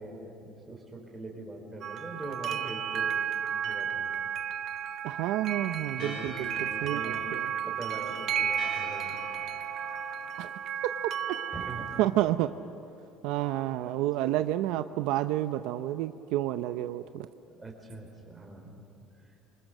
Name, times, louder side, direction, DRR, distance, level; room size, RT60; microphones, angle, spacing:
voice 1, 0.0-3.3 3.6-4.1 5.9-6.3 6.6-7.3 7.6-9.2 11.5-11.9 13.8-14.0 17.5-18.8 19.2-19.3, right 2 dB, 10° right, 0 dB, 4.4 m, -43 dB
sound 1, 1.8-12.0, right 9 dB, 40° right, 0.9 m, -33 dB
voice 2, 5.0-6.5 6.8-7.5 10.4-10.6 12.0-12.5 13.2-17.3, right 14 dB, 70° right, 10 dB, 0.6 m, -30 dB
Church bell, 6.0-12.2, left 4 dB, 45° left, 4.9 m, -47 dB
27.0 x 25.0 x 6.6 m, 2.7 s
cardioid pair, 160°, 0 cm